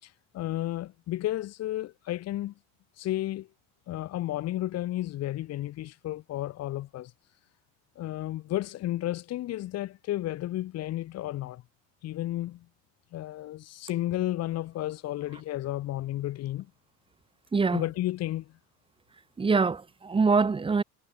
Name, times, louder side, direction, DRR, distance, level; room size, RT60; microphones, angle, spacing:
voice 1, 0.0-2.5 3.0-3.5 3.9-7.1 8.0-11.6 12.0-12.7 13.1-16.7 17.7-18.5, left 14 dB, 45° left, 5.8 m, -32 dB
voice 2, 17.5-17.8 19.4-20.8, right 4 dB, 15° right, 4.1 m, -24 dB
cardioid pair, 155°, 34 cm